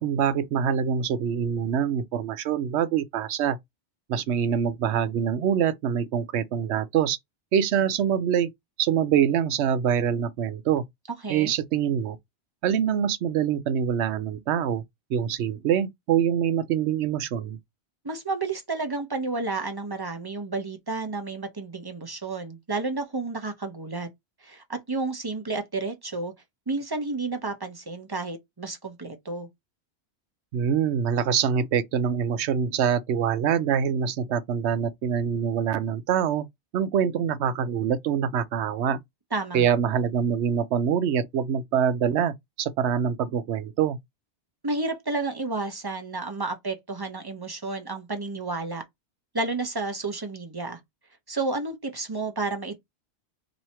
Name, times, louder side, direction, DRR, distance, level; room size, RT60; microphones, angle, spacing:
voice 1, 0.0-3.6 4.1-7.2 7.5-8.5 8.8-10.8 11.3-12.2 12.6-14.8 15.1-17.6 30.5-36.5 36.7-39.0 39.5-44.0, right 8 dB, 80° right, 0.9 m, -25 dB
voice 2, 18.0-24.1 24.4-26.3 26.7-29.5 39.3-39.7 44.6-48.8 49.3-50.8 51.3-52.8, right 3 dB, 25° right, 0.7 m, -31 dB
3.0 x 2.7 x 4.2 m
omnidirectional pair, 1.1 m